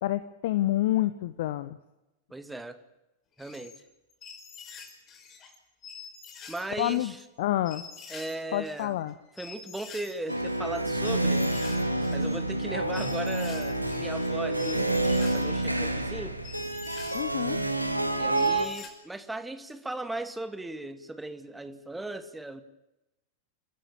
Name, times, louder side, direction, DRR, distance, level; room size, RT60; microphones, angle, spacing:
voice 1, 0.0-1.8 6.8-7.1 7.4-7.8 8.5-9.1 17.1-17.6, left 14 dB, 55° left, 14 dB, 1.0 m, -28 dB
voice 2, 2.3-2.8 3.4-3.8 6.5-7.2 8.1-9.0 9.4-11.5 12.1-16.4 18.2-22.6, right 2 dB, 5° right, 10 dB, 2.1 m, -37 dB
sound 1, 3.4-3.8 4.1-5.6 5.8-7.2 7.6-8.3 8.6-18.9, left 6 dB, 30° left, 5.1 m, -47 dB
sound 2, 10.3-18.7, right 2 dB, 90° right, 2.1 m, -28 dB
29.0 x 14.5 x 8.9 m, 0.97 s
figure-of-eight pair, 90°, 0 cm